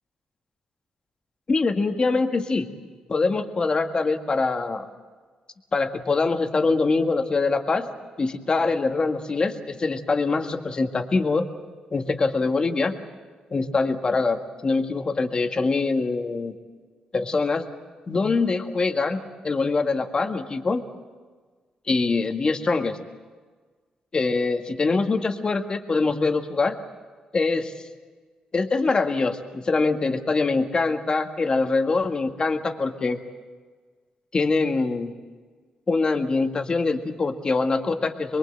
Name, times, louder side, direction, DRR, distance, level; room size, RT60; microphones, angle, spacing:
voice 1, 1.5-2.7 3.1-4.8 5.7-7.9 8.2-11.5 11.9-12.9 13.5-16.5 17.1-17.7 18.1-20.8 21.9-23.0 24.1-26.8 27.3-27.7 28.5-33.2 34.3-35.1 35.9-38.4, left 3 dB, 35° left, 5 dB, 1.9 m, -24 dB
25.0 x 22.0 x 7.8 m, 1.4 s
cardioid pair, 95°, 2 cm